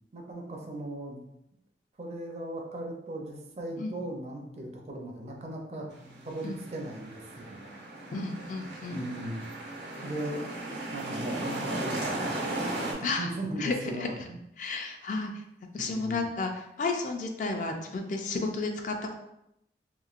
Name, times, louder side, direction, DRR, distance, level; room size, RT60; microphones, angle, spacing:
voice 1, 0.1-1.2 2.0-5.9 6.2-7.6 8.9-9.4 10.0-10.5 10.9-14.4 15.8-16.3, right 1 dB, 35° right, 1 dB, 0.4 m, -38 dB
sound 1, 5.9-12.9, right 1 dB, 85° right, 0.8 m, -36 dB
voice 2, 8.1-9.0 13.0-13.3 13.6-14.1 14.6-15.3 15.7-19.1, left 3 dB, 45° left, 4 dB, 0.3 m, -32 dB
3.0 x 2.6 x 2.4 m, 0.81 s
head